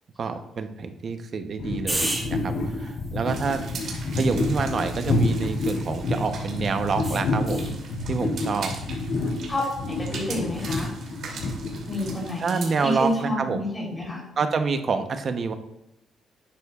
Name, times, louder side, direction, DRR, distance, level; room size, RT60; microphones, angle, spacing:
voice 1, 0.2-7.7 8.1-8.7 12.4-13.6 14.4-15.5, right 5 dB, 50° right, 7 dB, 0.9 m, -27 dB
sound 1, 1.6-12.5, left 2 dB, 65° left, 3.7 m, -28 dB
sound 2, 1.9-6.3 7.0-7.8 10.5-10.9, right 1 dB, 15° right, 2.0 m, -36 dB
sound 3, 3.3-13.2, right 5 dB, 65° right, 3.0 m, -41 dB
voice 2, 9.5-10.9 11.9-14.2, left 1 dB, 25° left, -3 dB, 3.7 m, -29 dB
12.0 x 9.1 x 2.5 m, 0.89 s
cardioid pair, 90°, 0 cm